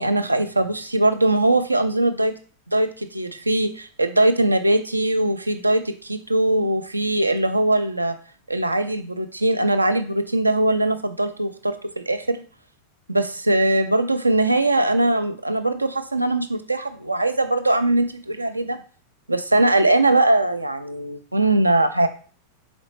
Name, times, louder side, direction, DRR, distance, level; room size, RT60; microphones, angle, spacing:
voice 1, 0.0-2.3 2.7-8.1 8.5-12.4 13.1-18.8 19.3-22.1, right 1 dB, 85° right, 9 dB, 0.4 m, -21 dB
4.1 x 4.0 x 3.2 m, 0.41 s
figure-of-eight pair, 90°, 0 cm